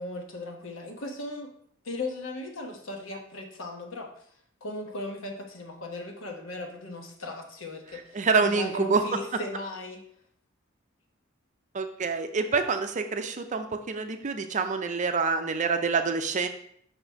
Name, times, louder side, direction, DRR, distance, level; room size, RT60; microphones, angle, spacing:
voice 1, 0.0-1.5 1.8-4.1 4.6-10.0, left 2 dB, 75° left, 2 dB, 1.1 m, -37 dB
voice 2, 8.1-9.0 11.7-16.5, right 4 dB, 40° right, 7 dB, 0.5 m, -26 dB
5.7 x 4.0 x 4.5 m, 0.66 s
head